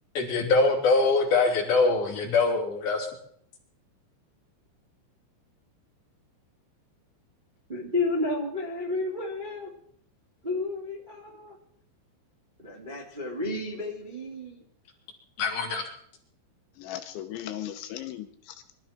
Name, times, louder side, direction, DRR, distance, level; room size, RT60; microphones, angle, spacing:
voice 1, 0.1-3.1 15.4-15.8, left 3 dB, 55° left, 0 dB, 4.9 m, -23 dB
voice 2, 7.7-9.7 10.4-11.6 12.6-14.6, left 2 dB, 20° right, -1 dB, 1.5 m, -31 dB
voice 3, 16.8-18.7, left 11 dB, 80° left, 7 dB, 3.3 m, -37 dB
24.5 x 13.0 x 4.4 m, 0.64 s
omnidirectional pair, 5.4 m